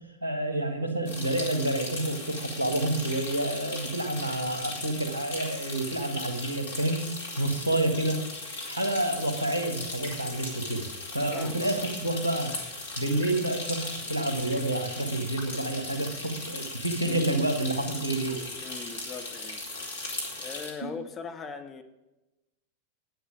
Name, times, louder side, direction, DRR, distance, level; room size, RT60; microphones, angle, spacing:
voice 1, 0.2-7.0 7.4-8.2 8.6-10.9 11.1-12.5 13.0-18.4 20.8-20.9, right 1 dB, 80° right, 1.6 m, -29 dB
sound 1, 1.1-20.7, left 2 dB, 65° left, 2.4 m, -37 dB
voice 2, 11.3-11.9 18.6-21.8, left 5 dB, 25° left, 1.0 m, -41 dB
10.5 x 9.2 x 5.1 m
figure-of-eight pair, 90°, 0 cm